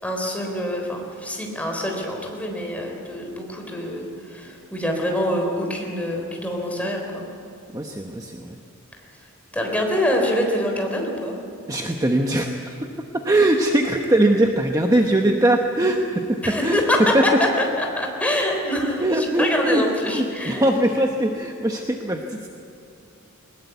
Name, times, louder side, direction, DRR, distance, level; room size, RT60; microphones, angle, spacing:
voice 1, 0.0-7.3 9.5-11.4 16.4-17.5 17.8-20.6, left 1 dB, 5° left, 1 dB, 3.8 m, -25 dB
voice 2, 7.7-8.6 11.7-12.8 13.1-16.8 17.1-17.2 19.0-22.5, right 1 dB, 15° right, 3 dB, 1.0 m, -21 dB
20.5 x 20.5 x 8.3 m, 2.7 s
head